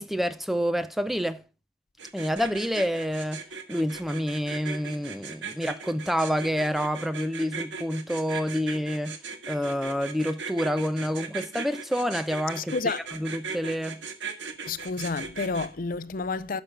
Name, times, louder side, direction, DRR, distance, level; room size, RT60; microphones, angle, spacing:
voice 1, 0.0-1.4 2.1-3.4 3.7-9.2 9.5-14.0, equal, ahead, 0.5 m, -28 dB
sound 1, 2.0-15.7, right 5 dB, 85° right, 1.7 m, -38 dB
voice 2, 12.6-13.0 14.7-16.6, left 4 dB, 50° left, 0.5 m, -30 dB
11.0 x 6.4 x 5.8 m
head